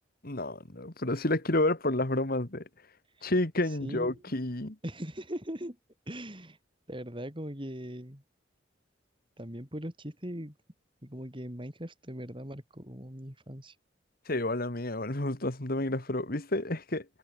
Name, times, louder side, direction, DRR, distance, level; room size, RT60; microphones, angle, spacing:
voice 1, 0.2-2.6 3.2-4.8 14.3-17.1, left 1 dB, 50° left, 2.2 m, -30 dB
voice 2, 3.8-4.3 4.8-5.8 6.1-6.6 6.9-8.2 9.4-10.5 11.0-13.7, equal, 25° right, 4.6 m, -40 dB
head